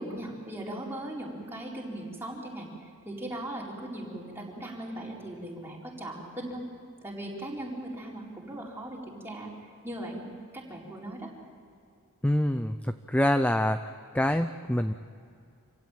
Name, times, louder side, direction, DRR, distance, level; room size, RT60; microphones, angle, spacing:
voice 1, 0.0-6.6 7.0-9.5 9.8-11.3, right 1 dB, 10° right, -4 dB, 4.5 m, -39 dB
voice 2, 12.2-13.8 14.1-14.9, left 1 dB, 5° left, 9 dB, 0.5 m, -25 dB
27.0 x 16.5 x 9.2 m, 2.4 s
head